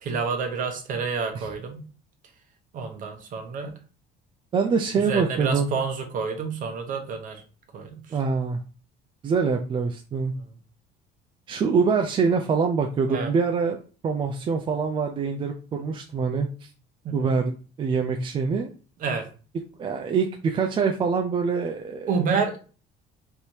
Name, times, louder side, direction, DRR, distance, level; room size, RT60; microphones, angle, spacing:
voice 1, 0.0-1.8 2.7-3.7 5.1-7.4 7.7-8.0 13.1-13.3 17.0-17.3 19.0-19.2 22.1-22.6, right 5 dB, 45° right, 5 dB, 0.9 m, -28 dB
voice 2, 4.5-5.7 8.1-8.6 9.2-10.3 11.5-13.8 14.0-16.7 17.1-18.7 19.8-22.2, right 5 dB, 25° right, 3 dB, 0.4 m, -25 dB
3.4 x 2.7 x 4.4 m, 0.36 s
cardioid pair, 155°, 19 cm